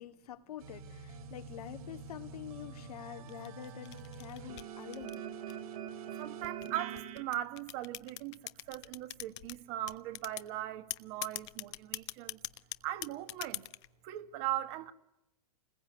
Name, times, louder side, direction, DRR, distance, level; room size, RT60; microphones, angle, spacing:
voice 1, 0.0-5.3, left 10 dB, 80° left, 2.4 m, -47 dB
sound 1, 0.6-7.2, right 7 dB, 70° right, 4.0 m, -45 dB
sound 2, 3.3-5.8 6.4-9.6 9.9-10.5 10.9-13.9, left 19 dB, 50° left, 1.1 m, -42 dB
voice 2, 6.1-12.4 12.8-13.6 14.0-14.9, right 13 dB, 45° right, 1.7 m, -39 dB
28.0 x 21.0 x 9.5 m
supercardioid pair, 150°, 19 cm